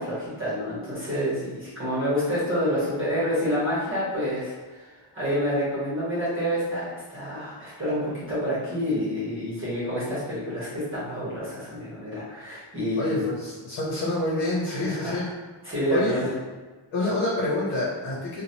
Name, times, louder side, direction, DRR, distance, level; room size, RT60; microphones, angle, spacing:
voice 1, 0.0-4.9 5.1-13.2 14.7-15.2 15.6-16.3, equal, 25° right, -10 dB, 1.2 m, -28 dB
voice 2, 13.0-15.2 15.9-16.3 16.9-18.4, left 1 dB, 70° left, -7 dB, 1.0 m, -27 dB
3.0 x 2.4 x 2.8 m, 1.3 s
cardioid pair, 115°, 50 cm